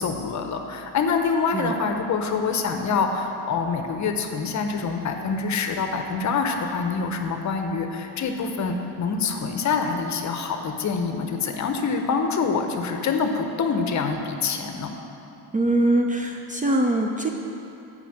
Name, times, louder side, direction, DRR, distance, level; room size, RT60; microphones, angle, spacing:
voice 1, 0.0-14.9, left 5 dB, 45° left, 5 dB, 0.7 m, -26 dB
voice 2, 15.5-17.3, right 1 dB, 20° right, 2 dB, 0.4 m, -22 dB
6.8 x 5.2 x 6.5 m, 2.8 s
cardioid pair, 115°, 40 cm